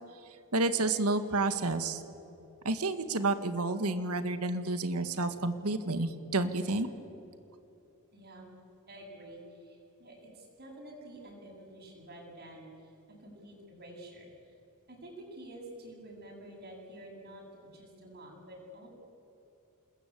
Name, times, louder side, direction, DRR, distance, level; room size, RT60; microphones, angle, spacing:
voice 1, 0.5-2.0 2.7-6.9, right 2 dB, 85° right, 10 dB, 1.8 m, -30 dB
voice 2, 8.1-8.5 8.9-12.9 13.2-14.6 14.9-17.4 17.7-18.9, right 1 dB, 45° right, 0 dB, 7.8 m, -49 dB
28.5 x 21.0 x 8.5 m, 2.8 s
head